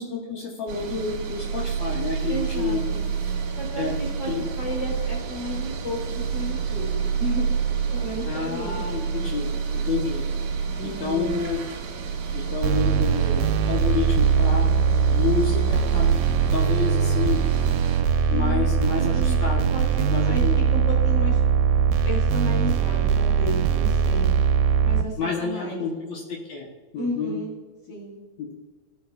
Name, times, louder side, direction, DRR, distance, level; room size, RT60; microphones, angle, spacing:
voice 1, 0.0-2.8 3.8-3.9 4.3-4.4 8.3-10.3 10.8-11.6 12.3-14.7 15.1-16.2 16.5-17.4 18.3-19.7 20.1-20.7 25.2-26.7 26.9-27.4 28.4-28.5, left 5 dB, 75° left, -2 dB, 1.7 m, -29 dB
sound 1, 0.7-18.0, right 6 dB, 60° right, 2.2 m, -29 dB
voice 2, 2.3-3.1 3.6-4.3 4.6-7.6 7.9-8.8 10.8-11.4 18.3-18.7 19.0-19.4 19.7-21.4 22.0-24.4 24.8-25.8 27.0-27.5 27.9-28.2, equal, 35° left, -3 dB, 2.8 m, -33 dB
sound 2, 12.6-25.0, right 7 dB, 85° right, 2.4 m, -21 dB
15.5 x 5.6 x 2.3 m, 1.3 s
omnidirectional pair, 4.5 m